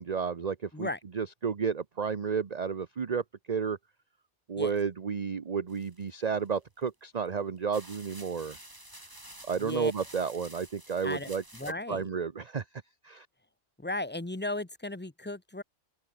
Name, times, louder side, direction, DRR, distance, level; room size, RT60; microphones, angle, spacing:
voice 1, 0.0-0.9 1.1-3.8 4.5-8.6 9.5-11.4 11.9-12.6 13.0-13.3, right 6 dB, 35° right, 0.8 m, -32 dB
sound 1, 5.7-6.6 7.3-7.4 7.7-11.7, right 1 dB, 15° right, 3.7 m, -50 dB
voice 2, 9.6-9.9 11.0-12.1 13.8-15.6, left 2 dB, 10° left, 0.9 m, -36 dB
open air
omnidirectional pair, 1.4 m